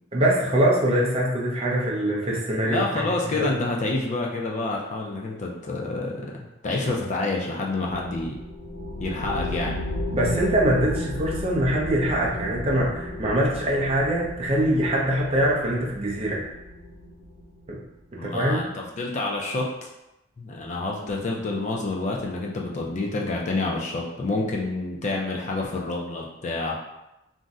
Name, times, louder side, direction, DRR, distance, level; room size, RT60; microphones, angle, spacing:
voice 1, 0.1-3.1 3.4-3.5 10.1-16.5 17.7-17.8 18.2-18.6, right 1 dB, 30° right, -2 dB, 0.5 m, -23 dB
voice 2, 2.6-6.3 6.6-8.3 9.0-9.7 18.2-19.9 20.4-26.7, left 2 dB, 35° left, -1 dB, 0.4 m, -28 dB
sound 1, 7.9-17.9, left 1 dB, 85° left, 0.7 m, -34 dB
2.6 x 2.1 x 3.5 m, 0.93 s
head